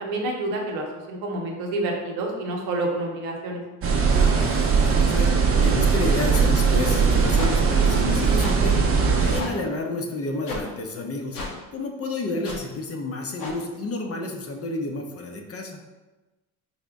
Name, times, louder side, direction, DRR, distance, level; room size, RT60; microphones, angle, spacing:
voice 1, 0.0-3.6, right 2 dB, 75° right, 1 dB, 0.8 m, -28 dB
sound 1, 3.8-9.4, right 5 dB, 30° right, 0.6 m, -20 dB
voice 2, 4.1-8.8 9.2-11.4 11.7-15.8, left 2 dB, 35° left, 3 dB, 0.6 m, -30 dB
sound 2, 7.4-7.5 8.4-8.6 9.4-9.5 10.5-10.6 11.3-11.5 12.4-12.6 13.4-13.5, left 2 dB, 85° left, 0.8 m, -32 dB
4.0 x 2.1 x 3.4 m, 1.1 s
hypercardioid pair, 65°, 45 cm